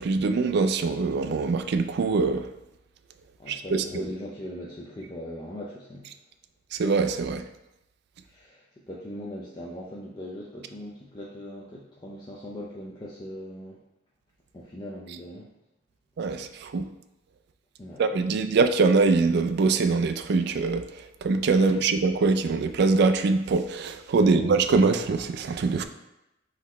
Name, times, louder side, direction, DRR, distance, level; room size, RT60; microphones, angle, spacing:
voice 1, 0.0-2.5 3.5-4.1 6.7-7.4 16.2-16.8 18.0-20.9 21.2-25.8, right 4 dB, 60° right, 9 dB, 0.3 m, -23 dB
voice 2, 3.4-6.0 8.3-13.8 14.5-15.5 17.8-18.4 21.6-21.8 24.2-24.5, left 1 dB, 25° left, -4 dB, 0.5 m, -40 dB
4.0 x 3.1 x 4.2 m, 0.92 s
head